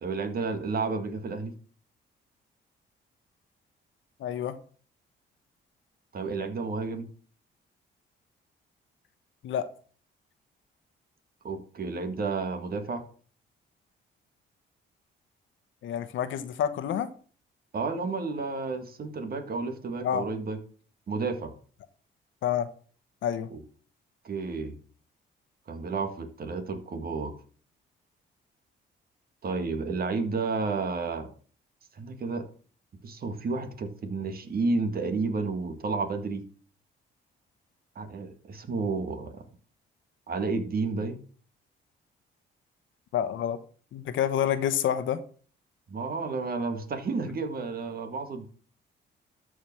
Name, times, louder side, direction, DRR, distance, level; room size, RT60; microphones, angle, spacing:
voice 1, 0.0-1.5 6.1-7.1 11.4-13.0 17.7-20.6 21.1-21.5 23.5-23.6 24.2-24.8 25.7-27.3 29.4-31.3 32.0-32.4 33.0-36.4 38.0-39.4 40.3-41.2 45.9-48.5, right 4 dB, 50° right, 7 dB, 1.8 m, -31 dB
voice 2, 4.2-4.6 9.4-9.7 15.8-17.1 20.0-20.3 22.4-22.7 23.2-23.5 43.1-43.6 43.9-45.2, left 9 dB, 75° left, 12 dB, 1.1 m, -28 dB
13.0 x 5.0 x 6.0 m, 0.43 s
cardioid pair, 90°, 20 cm